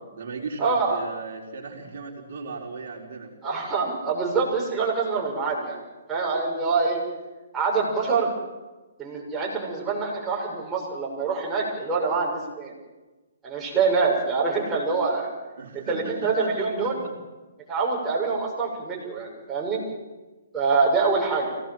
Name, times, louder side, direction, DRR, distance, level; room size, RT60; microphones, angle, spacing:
voice 1, 0.0-3.3 15.6-17.2, right 4 dB, 60° right, 0 dB, 3.8 m, -37 dB
voice 2, 0.6-1.0 3.4-5.8 6.1-7.0 7.5-8.3 9.0-12.7 13.4-15.3 15.7-17.0 17.7-19.8 20.5-21.5, right 4 dB, 15° right, -3 dB, 6.8 m, -25 dB
25.0 x 17.5 x 7.6 m, 1.2 s
hypercardioid pair, 145°, 0 cm